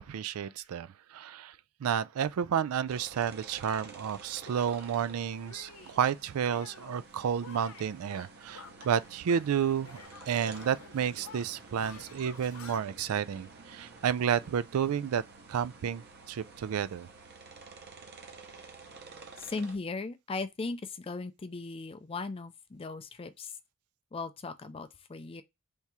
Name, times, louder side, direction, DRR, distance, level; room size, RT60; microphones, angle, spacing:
voice 1, 0.0-1.6 1.8-10.0 10.3-15.2 15.5-17.1, right 8 dB, 85° right, 0.4 m, -31 dB
sound 1, 2.9-19.8, right 4 dB, 50° right, 0.7 m, -51 dB
Shatter, 3.8-4.0 4.5-5.0 5.5-6.0 6.4-7.0 7.4-9.6 9.8-12.8, left 5 dB, 80° left, 0.8 m, -50 dB
voice 2, 19.4-23.6 24.1-25.4, left 3 dB, 25° left, 0.4 m, -38 dB
3.5 x 2.8 x 4.6 m
head